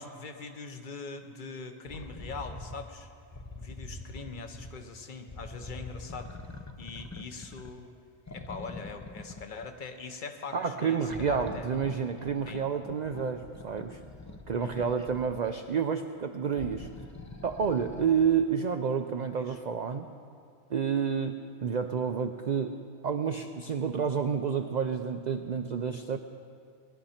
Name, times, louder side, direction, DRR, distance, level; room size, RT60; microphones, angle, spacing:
voice 1, 0.0-3.1 3.6-6.4 6.8-7.9 8.3-11.7 12.5-12.6 14.6-15.0 19.3-19.6, left 4 dB, 45° left, 7 dB, 1.0 m, -42 dB
sound 1, 1.9-2.8 3.3-4.8 5.3-7.9 8.3-9.8 11.0-15.5 16.4-18.4 19.4-19.5, left 2 dB, 25° left, 0.4 m, -44 dB
voice 2, 10.5-14.0 14.5-16.9 17.4-20.1 20.7-22.8 23.0-26.2, right 6 dB, 55° right, 7 dB, 0.5 m, -29 dB
19.5 x 12.0 x 4.3 m, 2.3 s
omnidirectional pair, 1.3 m